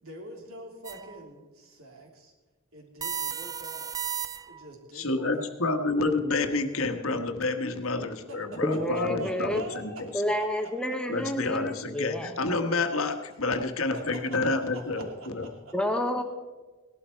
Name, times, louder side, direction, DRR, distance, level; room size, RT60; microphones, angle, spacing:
voice 1, 0.0-2.3 2.7-3.9 4.5-5.5 8.3-8.6 8.9-10.0 10.4-11.2 13.9-14.0 14.3-16.0, right 2 dB, 70° right, 0 dB, 3.2 m, -45 dB
sound 1, 0.8-1.2 3.0-4.7, right 7 dB, 15° right, 0.4 m, -34 dB
voice 2, 5.0-10.1 11.1-15.4, left 3 dB, 70° left, 7 dB, 1.4 m, -29 dB
voice 3, 8.6-9.6 10.1-12.3 15.7-16.2, left 1 dB, 5° left, 5 dB, 1.0 m, -29 dB
18.0 x 12.0 x 4.5 m, 1.3 s
head